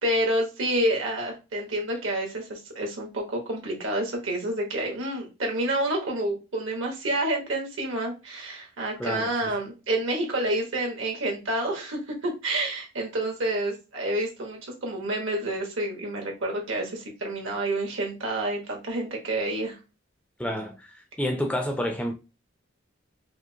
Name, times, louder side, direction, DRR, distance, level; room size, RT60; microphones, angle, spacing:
voice 1, 0.0-19.8, right 1 dB, 75° right, 1.2 m, -28 dB
voice 2, 20.4-20.7 21.2-22.1, equal, 5° left, 0.4 m, -28 dB
5.0 x 2.0 x 2.7 m
head